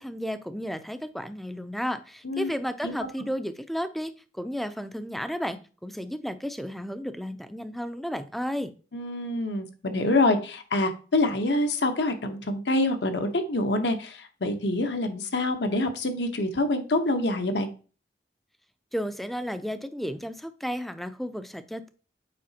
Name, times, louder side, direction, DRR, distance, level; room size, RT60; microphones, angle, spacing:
voice 1, 0.0-8.7 18.9-21.9, equal, ahead, 10 dB, 0.4 m, -33 dB
voice 2, 8.9-17.7, left 2 dB, 75° left, 7 dB, 0.9 m, -26 dB
7.5 x 4.9 x 2.8 m, 0.36 s
head